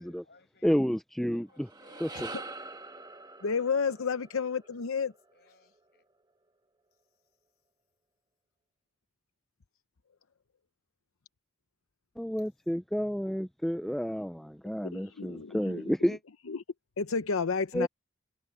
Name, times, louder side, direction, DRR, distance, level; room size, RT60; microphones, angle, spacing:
voice 1, 0.0-0.7 1.3-2.3 4.0-4.2 5.3-6.0, left 3 dB, 50° left, 6.7 m, -61 dB
voice 2, 0.6-1.7 2.0-2.3 12.2-16.2 17.7-17.9, equal, ahead, 0.3 m, -30 dB
sound 1, 1.5-6.0, right 3 dB, 20° right, 1.3 m, -45 dB
voice 3, 3.4-5.1 14.9-15.9 16.5-16.6 17.0-17.9, left 5 dB, 80° left, 0.7 m, -31 dB
head